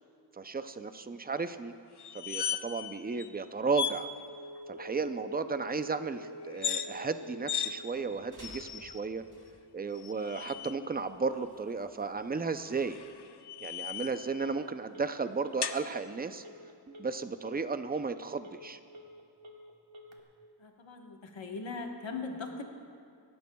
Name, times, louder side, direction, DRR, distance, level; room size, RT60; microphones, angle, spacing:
voice 1, 0.3-1.7 2.1-4.1 4.7-9.2 9.7-13.0 13.6-16.4 16.9-18.8, right 4 dB, 20° right, 10 dB, 0.5 m, -34 dB
sound 1, 2.0-2.9 3.2-3.3 3.7-4.0 6.5-6.9 7.5-7.7 8.4-9.0 10.0-10.8 12.7-14.3 15.6-15.8, left 8 dB, 65° left, 0.7 m, -36 dB
Telephone, 4.2-20.2, equal, 90° right, 1.3 m, -50 dB
sound 2, 7.8-13.1, right 1 dB, 45° right, 3.6 m, -58 dB
voice 2, 20.6-22.6, left 4 dB, 90° left, 2 dB, 1.4 m, -39 dB
26.5 x 12.5 x 2.3 m, 2.3 s
wide cardioid pair, 95°, 44 cm